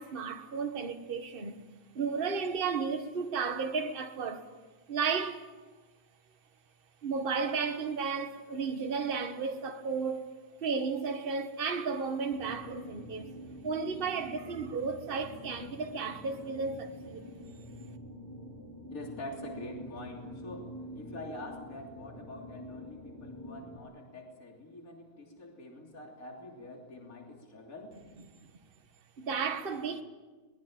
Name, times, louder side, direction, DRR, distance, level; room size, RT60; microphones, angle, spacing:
voice 1, 0.0-1.6 1.9-4.5 4.9-5.5 7.0-10.3 10.6-13.3 13.6-17.3 29.2-30.0, right 5 dB, 30° right, 1.5 m, -33 dB
sound 1, 12.3-23.8, equal, 10° left, 3.5 m, -46 dB
voice 2, 18.9-28.0, left 2 dB, 45° left, 3.7 m, -45 dB
22.5 x 21.0 x 8.8 m
omnidirectional pair, 2.2 m